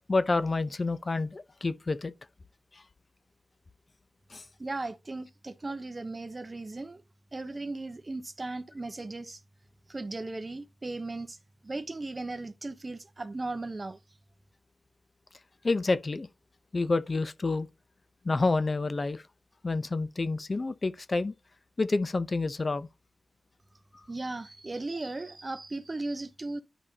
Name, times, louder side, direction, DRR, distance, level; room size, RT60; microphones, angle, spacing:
voice 1, 0.1-2.1 4.3-4.4 15.6-16.3 16.7-17.7 18.2-19.2 19.6-21.3 21.8-22.9, left 3 dB, 45° left, 0.7 m, -28 dB
voice 2, 4.6-7.0 7.3-9.4 9.9-11.4 11.6-14.0 24.1-26.6, right 2 dB, 35° right, 1.0 m, -37 dB
11.0 x 5.0 x 2.9 m
wide cardioid pair, 70°, 0 cm